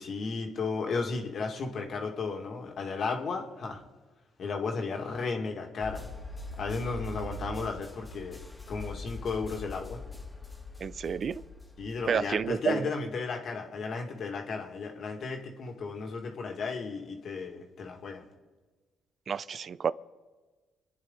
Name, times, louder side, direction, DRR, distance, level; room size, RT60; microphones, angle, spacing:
voice 1, 0.0-3.8 4.4-6.1 6.5-8.4 8.7-10.0 11.8-18.2, left 4 dB, 60° left, 2.3 m, -34 dB
sound 1, 5.8-12.5, left 2 dB, 15° left, 2.4 m, -42 dB
voice 2, 10.8-11.4 12.1-12.9 19.3-19.9, right 7 dB, 55° right, 0.5 m, -30 dB
27.5 x 9.8 x 4.1 m
supercardioid pair, 55°, 0 cm